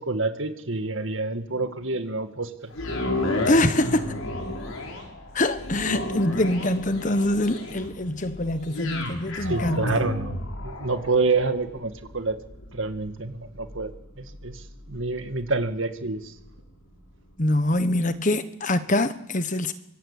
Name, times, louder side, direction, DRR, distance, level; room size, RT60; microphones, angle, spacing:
voice 1, 0.0-2.7 9.4-12.4 12.7-16.3, right 3 dB, 65° right, 2.0 m, -28 dB
sound 1, 2.7-16.9 17.4-17.5, left 2 dB, 75° left, 5.5 m, -33 dB
voice 2, 3.4-4.1 5.3-9.8 17.4-19.7, left 1 dB, 35° left, 1.3 m, -24 dB
24.5 x 23.0 x 8.4 m
head